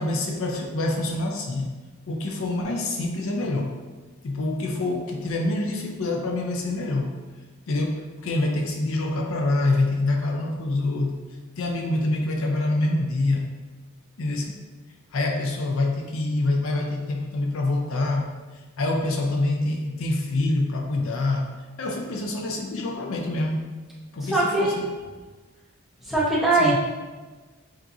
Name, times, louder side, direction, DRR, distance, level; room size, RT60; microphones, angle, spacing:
voice 1, 0.0-1.7 2.1-3.8 4.2-7.2 7.7-11.2 11.6-13.5 14.2-14.6 15.1-18.3 18.8-21.5 21.8-23.7 24.1-24.9 26.6-26.8, left 2 dB, 60° left, 1 dB, 0.5 m, -26 dB
voice 2, 24.2-24.8 26.0-26.8, right 2 dB, ahead, -8 dB, 0.9 m, -21 dB
7.2 x 2.6 x 2.6 m, 1.3 s
head